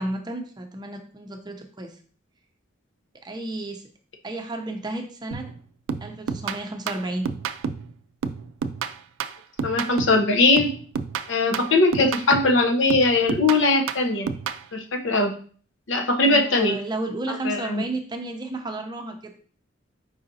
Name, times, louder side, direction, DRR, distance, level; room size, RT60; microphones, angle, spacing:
voice 1, 0.0-1.9 3.2-3.8 4.2-5.5 6.0-7.3 11.5-11.8 16.2-19.4, right 2 dB, 20° right, 4 dB, 0.6 m, -32 dB
sound 1, 5.3-5.6 5.9-7.9 8.2-10.3 10.6-12.6 12.9-14.6, right 6 dB, 80° right, 0.3 m, -30 dB
voice 2, 9.6-10.7 11.3-14.3 14.7-15.3 15.9-16.8 17.4-17.8, left 2 dB, 65° left, 4 dB, 0.7 m, -20 dB
4.8 x 4.0 x 2.7 m, 0.44 s
head